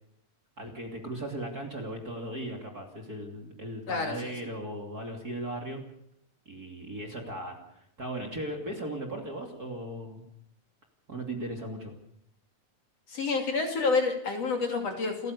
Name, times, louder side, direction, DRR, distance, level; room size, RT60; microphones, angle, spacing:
voice 1, 0.6-5.8 6.5-7.6 8.0-10.2 11.1-11.9, right 1 dB, 30° right, 2 dB, 2.9 m, -37 dB
voice 2, 3.9-4.3 13.1-15.3, left 4 dB, 50° left, 3 dB, 3.6 m, -29 dB
29.5 x 15.0 x 6.8 m, 0.73 s
omnidirectional pair, 3.9 m